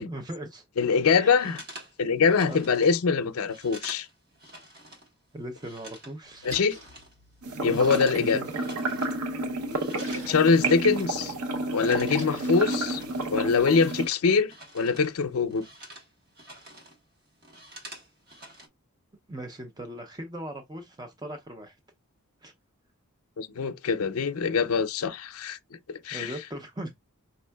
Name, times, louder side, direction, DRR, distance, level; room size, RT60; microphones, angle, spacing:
voice 1, 0.1-0.6 1.0-1.6 2.5-2.6 5.3-6.6 7.6-8.6 19.3-21.8 22.4-22.5 26.1-26.9, right 1 dB, 20° right, 0.5 m, -39 dB
voice 2, 0.8-1.6 2.0-4.1 6.4-6.8 7.6-8.4 10.3-11.3 11.7-13.0 13.3-15.6 23.4-25.6 25.9-26.3, left 5 dB, 75° left, 0.5 m, -24 dB
sound 1, 1.4-5.1 5.4-8.2 8.5-9.3 9.5-15.1 15.4-17.0 17.3-18.7, right 1 dB, 45° right, 1.3 m, -48 dB
Splash splatter, 6.2-13.6, equal, 65° right, 1.8 m, -50 dB
sound 2, 7.4-14.1, right 2 dB, 85° right, 0.8 m, -31 dB
5.4 x 3.4 x 2.2 m
head